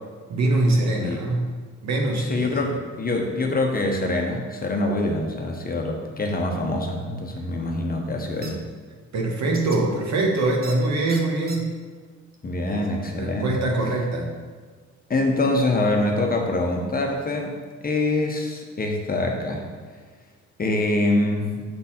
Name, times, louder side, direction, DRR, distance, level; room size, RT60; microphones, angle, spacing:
voice 1, 0.3-1.5 1.8-2.6 9.1-11.7 12.7-12.9 13.2-14.3, right 2 dB, 60° right, 0 dB, 1.3 m, -23 dB
voice 2, 2.2-8.6 12.4-13.5 15.1-17.6 17.8-19.6 20.6-21.6, left 2 dB, 30° left, 2 dB, 0.9 m, -25 dB
sound 1, 8.4-8.5 9.5-9.8 10.6-10.8 11.1-11.6, right 3 dB, 30° right, 0.8 m, -38 dB
6.7 x 4.0 x 4.3 m, 1.5 s
cardioid pair, 90°, 30 cm